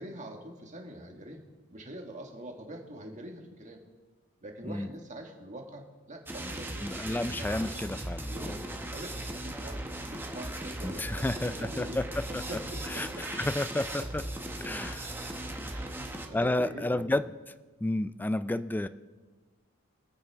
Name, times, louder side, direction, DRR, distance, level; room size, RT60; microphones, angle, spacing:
voice 1, 0.0-3.8 4.4-6.9 7.2-7.6 8.3-12.0 12.3-13.5 14.7-14.8 15.6-17.1, right 1 dB, 35° right, 2 dB, 1.6 m, -44 dB
sound 1, 6.3-16.3, right 1 dB, 10° right, 1.0 m, -38 dB
voice 2, 6.8-8.5 10.8-12.4 12.9-14.2 14.6-15.1 16.3-17.3 17.8-18.9, left 1 dB, 10° left, 13 dB, 0.3 m, -31 dB
23.5 x 8.9 x 3.5 m, 1.3 s
head